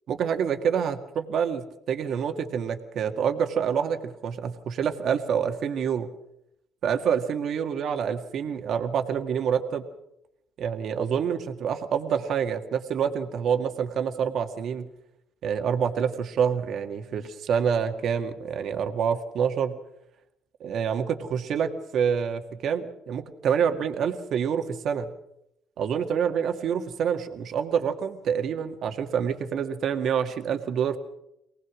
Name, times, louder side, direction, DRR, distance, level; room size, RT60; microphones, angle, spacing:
voice 1, 0.1-6.1 6.8-9.8 10.6-14.9 15.4-19.8 20.6-25.1 25.8-31.0, right 7 dB, 65° right, 6 dB, 2.0 m, -27 dB
23.5 x 18.5 x 6.3 m, 0.80 s
supercardioid pair, 75°, 0 cm